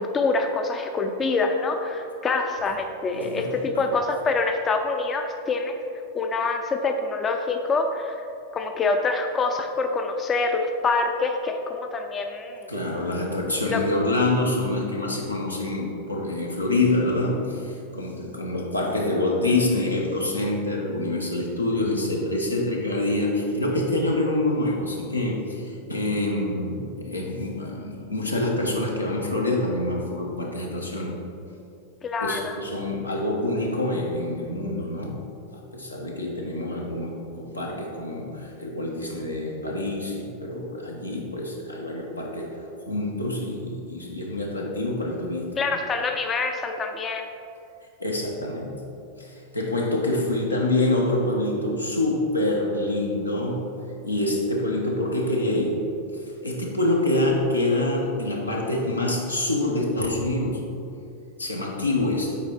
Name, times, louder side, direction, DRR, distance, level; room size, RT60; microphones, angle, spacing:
voice 1, 0.0-5.8 6.1-8.2 8.5-12.7 13.7-13.8 32.0-32.4 45.6-47.2, left 3 dB, 20° left, 4 dB, 0.5 m, -25 dB
voice 2, 3.1-3.9 12.7-31.2 32.2-35.2 35.5-45.6 48.0-48.9 49.2-53.7 54.0-55.9 56.4-60.7 61.4-62.4, left 2 dB, 85° left, -2 dB, 1.0 m, -26 dB
7.4 x 4.7 x 4.3 m, 2.6 s
figure-of-eight pair, 90°, 0 cm